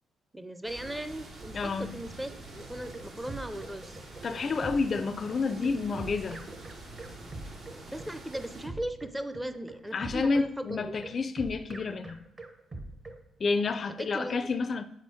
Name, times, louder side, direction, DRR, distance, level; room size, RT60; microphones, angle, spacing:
voice 1, 0.3-4.0 7.9-11.0 14.0-14.5, right 1 dB, 10° right, 0.5 m, -38 dB
sound 1, 0.6-8.7, right 2 dB, 75° right, 2.6 m, -46 dB
voice 2, 1.5-2.0 4.2-6.4 9.9-12.2 13.4-14.8, left 4 dB, 45° left, 0.4 m, -29 dB
sound 2, 2.6-13.2, right 2 dB, 30° right, 1.0 m, -43 dB
7.4 x 4.3 x 4.9 m
cardioid pair, 90°, 0 cm